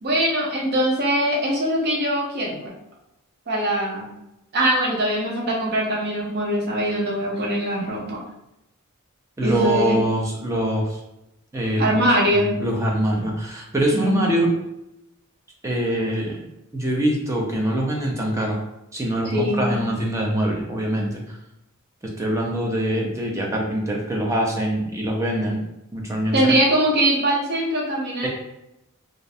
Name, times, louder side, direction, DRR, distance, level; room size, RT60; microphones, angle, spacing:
voice 1, 0.0-2.7 3.5-4.1 4.5-8.2 9.4-10.1 11.8-12.5 13.9-14.3 19.2-19.8 26.3-28.3, right 1 dB, 50° right, -2 dB, 0.7 m, -22 dB
voice 2, 9.4-11.0 11.5-12.0 12.3-14.5 15.6-16.4 16.7-18.6 18.9-21.2 22.2-25.6 25.9-26.5 28.2-28.3, right 1 dB, 15° right, -1 dB, 0.4 m, -24 dB
2.4 x 2.1 x 2.6 m, 0.87 s
head